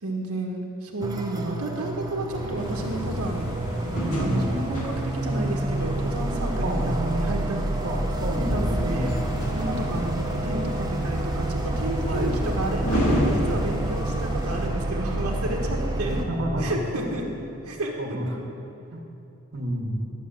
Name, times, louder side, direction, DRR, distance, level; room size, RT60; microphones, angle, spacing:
voice 1, 0.0-3.5 4.2-7.6 8.4-9.2 9.5-16.2 16.6-17.2 17.6-18.3, right 1 dB, 85° right, 0 dB, 1.5 m, -31 dB
sound 1, 1.0-16.2, right 2 dB, 15° right, 0.6 m, -29 dB
sound 2, 2.3-14.4, equal, 20° left, 3.3 m, -35 dB
sound 3, 2.6-14.7, equal, 80° left, 2.4 m, -33 dB
voice 2, 4.0-4.5 6.6-7.0 7.8-9.2 12.1-12.4 16.3-17.0 18.0-18.3 18.9-19.0 19.5-20.1, right 1 dB, 55° right, 0 dB, 1.5 m, -30 dB
12.0 x 7.0 x 7.6 m, 2.8 s
head